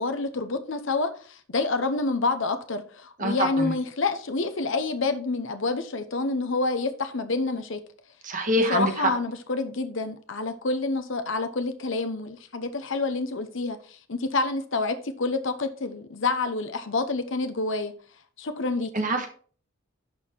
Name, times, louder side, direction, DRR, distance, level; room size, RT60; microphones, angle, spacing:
voice 1, 0.0-7.8 8.7-17.9 18.4-18.9, left 3 dB, 60° left, 0.8 m, -28 dB
voice 2, 3.2-3.7 8.2-9.1 18.9-19.3, right 1 dB, 35° right, 1.4 m, -25 dB
11.5 x 4.3 x 4.4 m
head